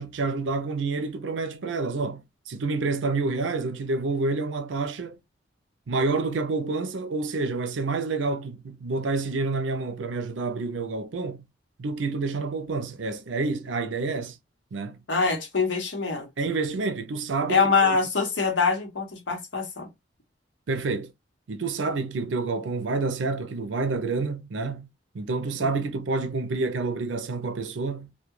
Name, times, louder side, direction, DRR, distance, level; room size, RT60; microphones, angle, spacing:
voice 1, 0.0-5.2 5.9-11.4 11.8-14.4 14.7-15.0 16.4-18.0 20.7-21.1 21.5-24.9 25.1-28.1, right 3 dB, 85° right, 0.5 m, -28 dB
voice 2, 15.1-16.3 17.5-19.9 25.6-25.7, left 4 dB, 75° left, 1.0 m, -24 dB
2.3 x 2.2 x 3.0 m
head